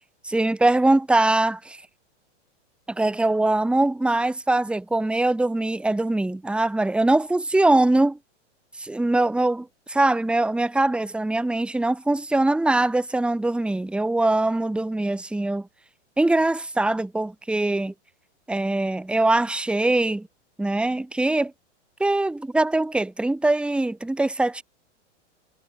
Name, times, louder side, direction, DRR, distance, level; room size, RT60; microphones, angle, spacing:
voice 1, 0.2-1.8 2.9-8.2 8.8-15.7 16.2-17.9 18.5-20.3 20.6-21.5 22.0-24.6, right 2 dB, 5° right, 1.6 m, -22 dB
hypercardioid pair, 135°, 36 cm